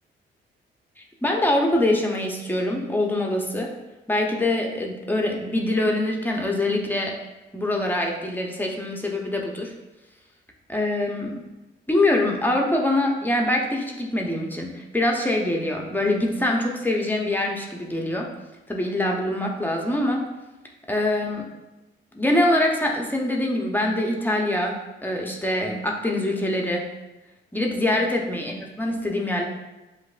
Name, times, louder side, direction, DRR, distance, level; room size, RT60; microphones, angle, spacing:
voice 1, 1.0-3.7 4.1-7.2 7.5-9.7 10.7-11.4 11.9-18.3 18.7-20.2 20.9-21.5 22.1-26.9 27.5-29.5, left 1 dB, 10° left, 0 dB, 0.7 m, -24 dB
7.7 x 2.6 x 2.5 m, 1.0 s
cardioid pair, 90°, 20 cm